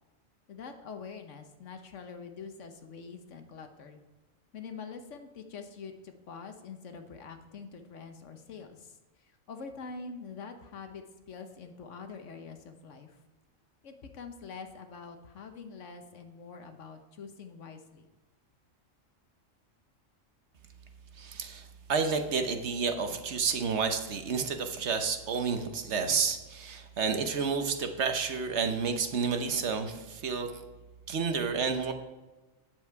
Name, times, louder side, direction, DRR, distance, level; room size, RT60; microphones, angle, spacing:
voice 1, 0.5-4.0 4.5-8.9 9.5-13.1 13.8-18.0, left 5 dB, 70° left, 6 dB, 1.3 m, -45 dB
voice 2, 21.1-30.5 31.1-31.9, right 5 dB, 65° right, 7 dB, 1.1 m, -30 dB
9.3 x 7.5 x 4.6 m, 1.1 s
omnidirectional pair, 1.3 m